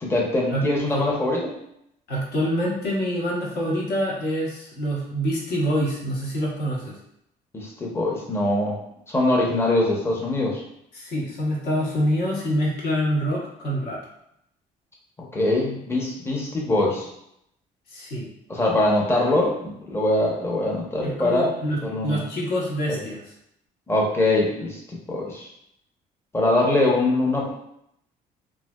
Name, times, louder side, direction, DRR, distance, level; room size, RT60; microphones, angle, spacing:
voice 1, 0.0-1.5 7.5-8.8 9.1-10.6 15.3-17.1 18.5-21.5 21.8-22.3 22.9-23.0 23.9-25.5 26.3-27.5, left 2 dB, 15° left, -3 dB, 0.7 m, -23 dB
voice 2, 2.1-6.9 10.9-14.0 17.9-18.3 21.0-23.2, equal, 65° left, -4 dB, 1.0 m, -26 dB
3.2 x 2.6 x 2.2 m, 0.76 s
cardioid pair, 110°, 17 cm